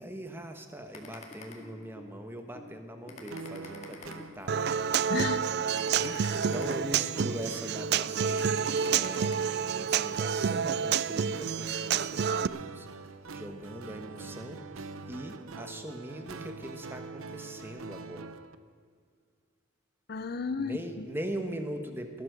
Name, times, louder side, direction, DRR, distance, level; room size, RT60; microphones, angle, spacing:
voice 1, 0.0-4.6 6.3-9.4 9.7-12.9 13.3-14.6 15.1-18.4 20.6-22.2, right 1 dB, 10° right, 6 dB, 1.2 m, -41 dB
sound 1, 0.9-2.1 2.5-2.7 3.1-4.7 5.1-5.3 5.7-7.3 7.8-7.9 8.3-9.3, left 3 dB, 30° left, 2.1 m, -46 dB
sound 2, 3.3-18.5, right 4 dB, 85° right, 0.7 m, -45 dB
Human voice / Acoustic guitar, 4.5-12.5, right 7 dB, 50° right, 0.4 m, -29 dB
voice 2, 5.1-5.5 5.8-6.5 20.1-21.1, left 5 dB, 50° left, 12 dB, 0.5 m, -35 dB
18.0 x 11.5 x 6.7 m, 2.2 s
head